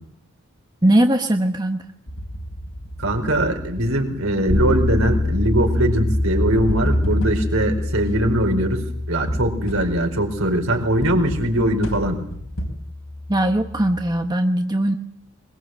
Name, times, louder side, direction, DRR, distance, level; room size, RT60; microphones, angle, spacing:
voice 1, 0.8-1.8 13.3-15.0, right 1 dB, 20° right, 5 dB, 1.2 m, -19 dB
sound 1, 2.1-7.7 9.3-10.1 11.0-12.7, equal, 70° left, 4.3 m, -30 dB
voice 2, 3.0-12.2, right 1 dB, 70° right, 4 dB, 4.7 m, -21 dB
Bass guitar, 4.5-14.3, left 2 dB, 10° left, 2.6 m, -26 dB
23.0 x 22.0 x 7.9 m, 0.67 s
head